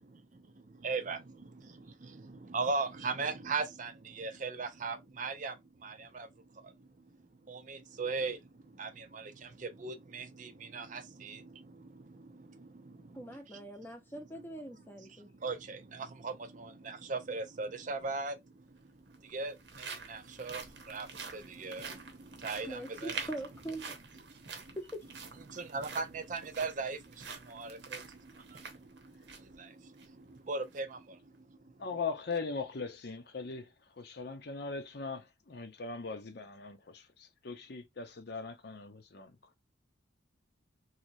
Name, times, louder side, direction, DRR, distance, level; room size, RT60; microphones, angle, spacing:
voice 1, 0.3-13.6 15.2-23.3 24.3-24.8 25.5-31.8, right 4 dB, 40° right, 0.5 m, -40 dB
voice 2, 13.1-15.3 22.7-24.0 24.8-25.0, right 1 dB, 10° left, 0.7 m, -42 dB
sound 1, 18.0-18.1 19.0-29.5 29.9-30.1 30.6-30.8, right 5 dB, 65° right, 0.9 m, -47 dB
voice 3, 31.8-33.7 34.0-39.3, left 4 dB, 60° left, 0.7 m, -40 dB
3.2 x 2.8 x 2.6 m
head